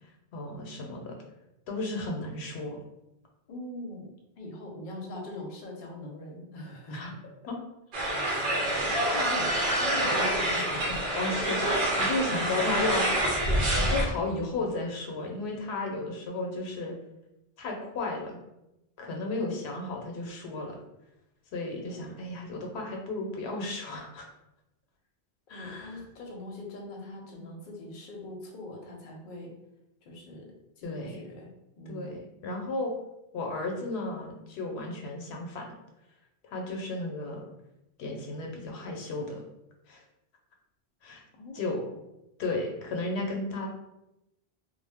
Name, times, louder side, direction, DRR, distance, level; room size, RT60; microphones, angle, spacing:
voice 1, 0.3-1.2 1.7-2.8 6.9-7.1 7.5-7.6 11.2-13.0 13.9-16.9 17.6-18.4 19.0-20.8 21.5-24.3 25.5-26.0 30.8-31.2 31.9-32.9 33.3-35.7 36.4-37.5 38.0-39.4 39.9-40.0 41.0-41.2 41.5-41.8 42.4-43.7, left 2 dB, 90° left, 2 dB, 0.8 m, -34 dB
voice 2, 3.5-7.1 8.2-11.0 11.4-11.6 12.1-13.1 13.7-14.0 19.3-19.6 21.9-22.0 25.5-29.5 30.0-31.5 31.8-32.2 41.3-42.0, left 1 dB, 55° left, 0 dB, 0.7 m, -42 dB
sound 1, 7.9-14.0, right 1 dB, 60° right, 0.8 m, -27 dB
2.5 x 2.0 x 3.3 m, 0.90 s
omnidirectional pair, 1.1 m